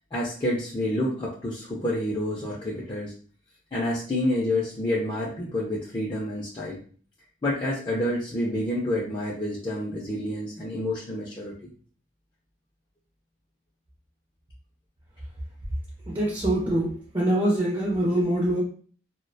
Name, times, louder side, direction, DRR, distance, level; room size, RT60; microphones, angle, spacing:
voice 1, 0.1-3.1 3.7-6.8 7.4-11.7, left 1 dB, 25° left, -6 dB, 0.4 m, -28 dB
voice 2, 16.1-18.6, right 1 dB, 25° right, -3 dB, 0.5 m, -24 dB
2.3 x 2.1 x 2.6 m, 0.44 s
head